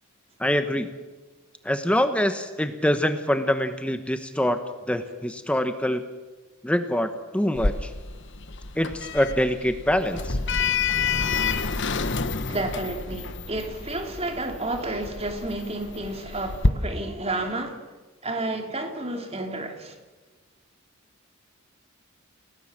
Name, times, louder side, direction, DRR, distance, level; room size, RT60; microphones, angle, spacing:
voice 1, 0.4-0.9 1.6-4.6 4.9-6.0 6.6-7.9 8.7-10.4, equal, 5° left, 1.0 m, -24 dB
Sliding door, 7.6-16.7, left 4 dB, 55° left, 1.3 m, -28 dB
voice 2, 10.6-11.7 12.5-17.8 18.2-20.0, right 2 dB, 25° right, 2.9 m, -31 dB
29.5 x 18.5 x 7.4 m
head